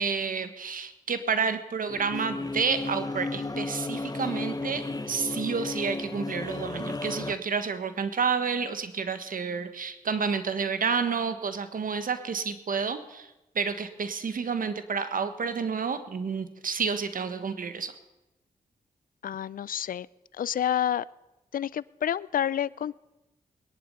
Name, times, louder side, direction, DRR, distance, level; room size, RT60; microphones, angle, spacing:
voice 1, 0.0-17.9, right 5 dB, 65° right, 11 dB, 1.4 m, -30 dB
sound 1, 1.9-7.3, left 3 dB, 25° left, 1.1 m, -34 dB
voice 2, 19.2-20.1 20.3-21.0 21.5-22.9, left 10 dB, 70° left, 21 dB, 0.4 m, -29 dB
20.5 x 11.0 x 5.5 m, 0.99 s
supercardioid pair, 45°, 15 cm